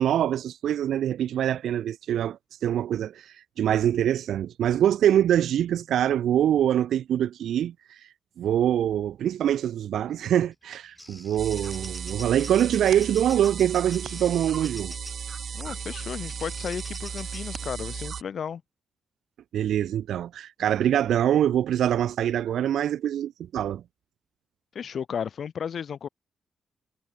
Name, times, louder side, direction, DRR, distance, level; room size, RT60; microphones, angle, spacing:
voice 1, 0.0-8.1 8.4-14.9 19.5-23.8, right 10 dB, 85° right, 0.4 m, -24 dB
Bird vocalization bird call bird song, 10.5-15.3 16.3-17.4, equal, ahead, 1.3 m, -46 dB
sound 1, 11.4-18.2, right 6 dB, 45° right, 1.2 m, -35 dB
voice 2, 15.5-18.6 24.7-26.1, left 7 dB, 50° left, 0.4 m, -34 dB
wide cardioid pair, 155°, 0 cm